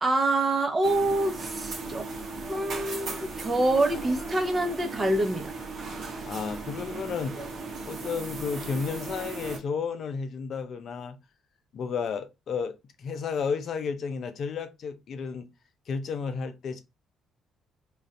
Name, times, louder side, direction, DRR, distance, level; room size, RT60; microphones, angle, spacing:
voice 1, 0.0-2.1 2.5-5.5, right 2 dB, 30° right, 0.9 m, -26 dB
sound 1, 0.8-9.6, right 3 dB, 60° right, 0.8 m, -37 dB
voice 2, 6.3-7.3 7.8-11.2 11.7-15.5 15.9-16.8, left 5 dB, 60° left, 0.5 m, -32 dB
2.5 x 2.4 x 3.2 m
supercardioid pair, 60°, 0 cm